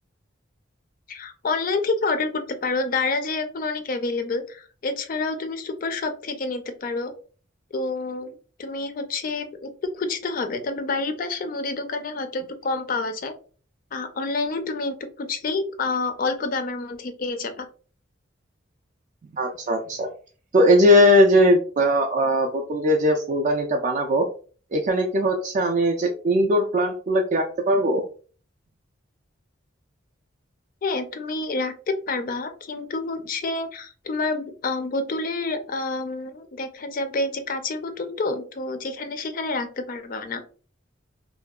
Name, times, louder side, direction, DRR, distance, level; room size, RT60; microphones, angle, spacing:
voice 1, 1.1-7.1 7.7-13.3 13.9-17.7 30.8-40.4, left 3 dB, 45° left, 8 dB, 0.4 m, -28 dB
voice 2, 19.3-20.1 20.5-24.3 24.7-28.0, equal, 40° right, 2 dB, 0.3 m, -19 dB
2.6 x 2.2 x 2.3 m, 0.39 s
head